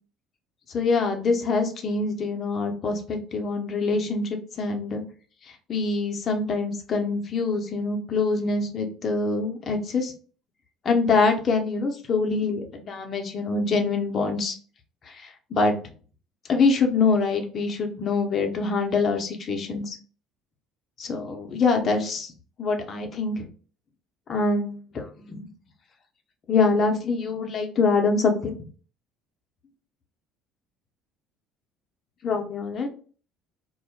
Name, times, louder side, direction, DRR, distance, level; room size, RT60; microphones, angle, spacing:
voice 1, 0.7-4.3 4.6-5.0 5.7-10.1 10.8-14.6 15.1-15.7 16.5-20.0 21.0-22.3 22.6-23.5 24.3-25.5 26.5-28.5 32.2-32.9, left 4 dB, 45° left, 4 dB, 0.7 m, -24 dB
2.3 x 2.1 x 3.5 m, 0.39 s
hypercardioid pair, 60°, 0 cm